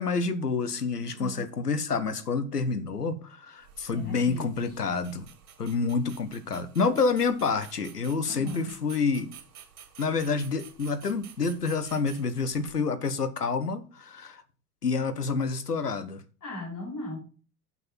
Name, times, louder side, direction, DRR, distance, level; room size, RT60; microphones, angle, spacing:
voice 1, 0.0-5.3 5.6-9.3 10.0-14.4 14.8-16.2, left 4 dB, 90° left, 0.9 m, -28 dB
voice 2, 1.0-1.5 3.9-4.5 8.3-8.7 16.4-17.2, left 2 dB, 40° left, 5.0 m, -38 dB
sound 1, 3.6-12.8, right 8 dB, 65° right, 2.2 m, -51 dB
7.6 x 6.0 x 5.4 m
figure-of-eight pair, 75°, 45 cm